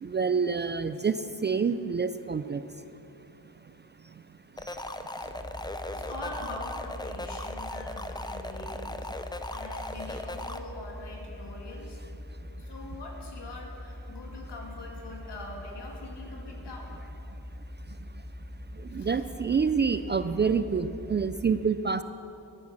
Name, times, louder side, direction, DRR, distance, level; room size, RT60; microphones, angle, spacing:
voice 1, 0.0-1.2 1.4-2.6 18.9-22.0, right 5 dB, 25° right, 12 dB, 0.3 m, -27 dB
sound 1, 4.6-10.6, left 1 dB, 10° left, 0.6 m, -38 dB
sound 2, 5.2-21.5, left 1 dB, 45° right, 2.7 m, -43 dB
voice 2, 5.8-12.0 12.6-17.0 19.0-19.2, left 2 dB, 65° left, 0 dB, 2.7 m, -43 dB
12.5 x 11.0 x 6.3 m, 2.9 s
cardioid pair, 95°, 45 cm